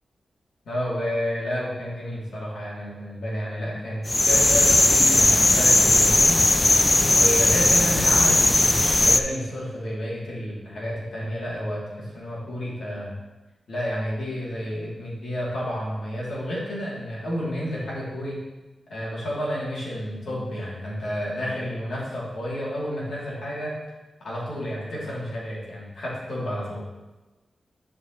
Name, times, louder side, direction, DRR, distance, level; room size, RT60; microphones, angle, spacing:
voice 1, 0.6-6.4 7.1-13.1 13.7-18.4 18.9-23.8 24.2-26.8, equal, 80° left, -6 dB, 2.7 m, -30 dB
sound 1, 4.1-9.2, left 2 dB, 25° left, 0.4 m, -18 dB
11.5 x 4.8 x 3.0 m, 1.1 s
cardioid pair, 55°, 0 cm